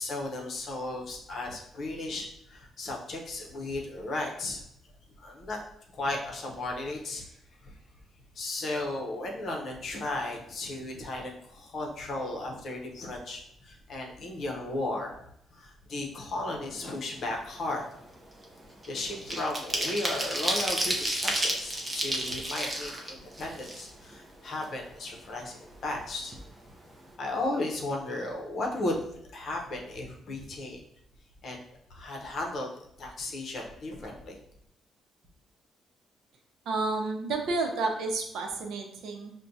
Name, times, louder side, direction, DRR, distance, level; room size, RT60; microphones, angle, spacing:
voice 1, 0.0-4.6 5.2-5.6 5.9-7.3 7.6-7.7 8.3-15.2 15.5-17.8 18.9-26.4 27.2-30.8 31.4-31.6 31.9-32.7 33.0-34.4, left 2 dB, 45° left, 0 dB, 0.7 m, -35 dB
sound 1, 17.2-17.5 17.8-24.2 24.6-24.7 25.0-26.0 26.3-26.5 26.8-27.1, right 1 dB, 15° right, 0.6 m, -32 dB
voice 2, 36.7-39.3, right 3 dB, 75° right, 2 dB, 0.6 m, -30 dB
5.7 x 2.2 x 2.6 m, 0.73 s
cardioid pair, 160°, 0 cm